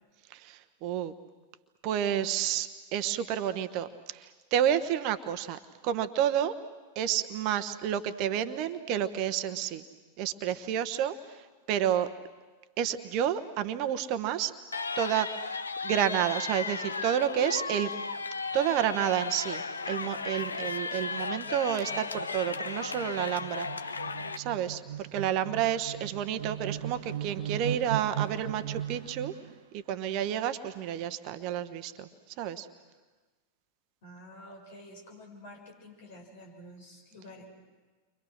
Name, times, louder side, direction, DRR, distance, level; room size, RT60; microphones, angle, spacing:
voice 1, 0.3-1.1 1.8-6.6 6.9-9.8 10.2-11.4 11.7-12.1 12.8-14.5 14.9-17.9 18.5-23.9 24.4-24.8 25.1-29.3 29.7-32.1 32.4-32.7, right 10 dB, 40° right, 10 dB, 1.1 m, -30 dB
sound 1, 14.7-24.4, left 4 dB, 75° left, 0.8 m, -35 dB
sound 2, 19.6-19.7 20.0-29.6, right 11 dB, 60° right, 0.9 m, -39 dB
voice 2, 34.0-37.4, left 1 dB, 55° left, 0 dB, 7.5 m, -49 dB
30.0 x 24.5 x 6.5 m, 1.3 s
figure-of-eight pair, 90°, 0 cm